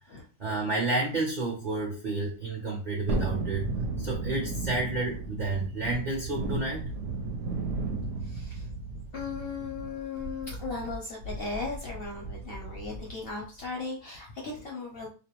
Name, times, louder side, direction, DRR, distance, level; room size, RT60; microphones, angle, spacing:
voice 1, 0.1-3.7 4.0-6.8, right 2 dB, 45° right, -3 dB, 0.6 m, -31 dB
Thunderstorm, 3.1-13.3 13.6-13.7, right 3 dB, 70° right, 0.9 m, -35 dB
voice 2, 8.2-8.7 9.1-15.1, left 4 dB, 60° left, -2 dB, 0.6 m, -37 dB
2.4 x 2.1 x 2.9 m, 0.36 s
omnidirectional pair, 1.5 m